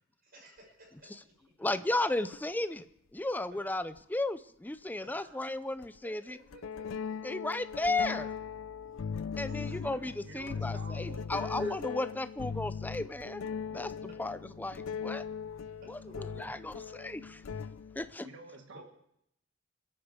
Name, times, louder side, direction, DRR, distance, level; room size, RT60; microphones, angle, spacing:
voice 1, 0.2-2.3 5.0-5.7 6.0-6.6 8.1-8.2 9.5-10.0 15.9-16.0 18.7-18.8, equal, 50° right, -1 dB, 5.8 m, -55 dB
voice 2, 1.6-2.9 3.1-6.4 7.2-8.3 9.4-13.4 13.7-15.2 15.9-17.4 18.0-18.3, left 2 dB, 10° left, 13 dB, 0.5 m, -34 dB
sound 1, 2.3-2.4 4.0-4.1 5.8-6.0 6.5-18.1, left 6 dB, 90° left, 0.5 m, -39 dB
voice 3, 9.8-12.0 16.1-16.6 18.2-18.8, right 3 dB, 65° right, 4 dB, 1.5 m, -49 dB
24.5 x 8.9 x 4.7 m, 0.76 s
head